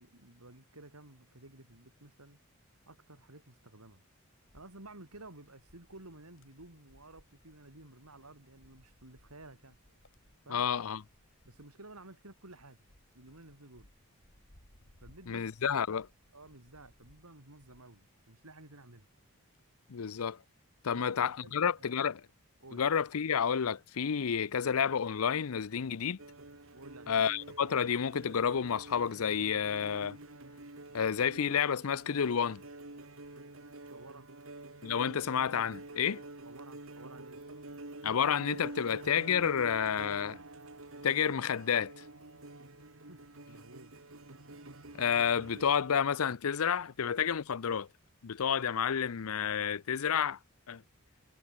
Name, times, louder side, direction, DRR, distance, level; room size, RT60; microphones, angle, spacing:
voice 1, 0.0-2.4 2.9-4.0 4.5-9.8 10.5-10.6 11.4-12.8 13.1-13.9 15.0-16.0 16.3-19.1 20.9-21.9 22.6-22.8 26.7-27.3 33.9-34.3 36.5-37.4 43.1-43.2 43.5-43.9, right 2 dB, 85° right, 5.3 m, -53 dB
Wind, 4.4-18.6 19.0-20.5, left 1 dB, 60° left, 4.4 m, -65 dB
voice 2, 10.5-11.0 15.3-16.1 19.9-20.4 20.8-22.2 22.7-26.2 27.1-30.2 30.9-32.6 34.8-36.2 38.0-40.4 41.0-41.9 45.0-47.9 48.2-50.4 50.7-50.8, left 7 dB, 75° left, 0.6 m, -30 dB
sound 1, 26.2-45.7, right 2 dB, 65° right, 2.7 m, -48 dB
head